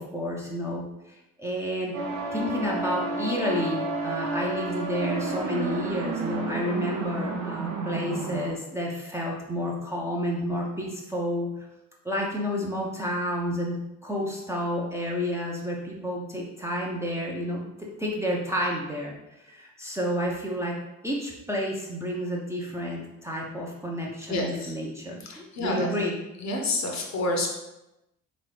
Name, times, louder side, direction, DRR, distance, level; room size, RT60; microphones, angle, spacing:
voice 1, 0.0-1.9 2.3-11.7 12.0-20.8 21.0-26.2, equal, 5° right, -3 dB, 0.7 m, -30 dB
sound 1, 1.9-8.5, right 3 dB, 55° right, 0.8 m, -31 dB
voice 2, 24.3-24.7 25.2-25.9 26.4-27.5, left 2 dB, 40° left, 2 dB, 0.9 m, -28 dB
3.6 x 3.0 x 3.3 m, 0.94 s
figure-of-eight pair, 45°, 42 cm